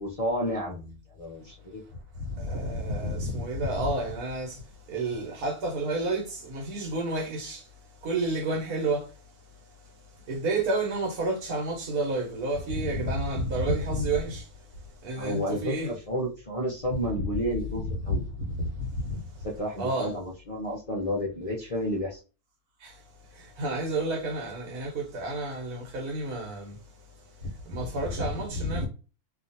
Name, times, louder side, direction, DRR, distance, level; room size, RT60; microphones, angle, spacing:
voice 1, 0.0-1.8 15.2-18.3 19.4-22.2, equal, 70° left, 0.3 m, -31 dB
voice 2, 2.4-4.5 4.9-7.6 8.0-9.0 10.3-14.4 15.0-15.9 18.1-18.2 18.6-18.7 19.8-20.1 23.6-26.7 27.7-28.9, right 2 dB, 85° right, 1.5 m, -29 dB
2.9 x 2.5 x 2.6 m
omnidirectional pair, 1.6 m